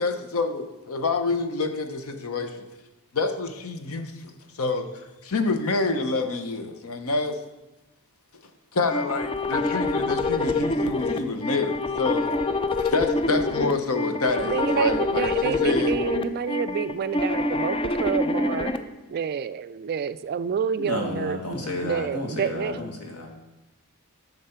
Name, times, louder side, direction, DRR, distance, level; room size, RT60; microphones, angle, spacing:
voice 1, 0.0-2.7 3.1-4.9 5.2-7.4 8.7-12.2 12.8-16.0, left 3 dB, 70° left, 7 dB, 0.8 m, -27 dB
sound 1, 8.9-18.8, left 2 dB, 25° left, 0.4 m, -26 dB
voice 2, 14.4-18.7 19.1-21.4 21.8-22.8, right 7 dB, 45° right, 14 dB, 0.3 m, -28 dB
voice 3, 20.8-23.3, left 2 dB, 85° left, 1 dB, 1.7 m, -31 dB
10.0 x 6.5 x 4.4 m, 1.0 s
head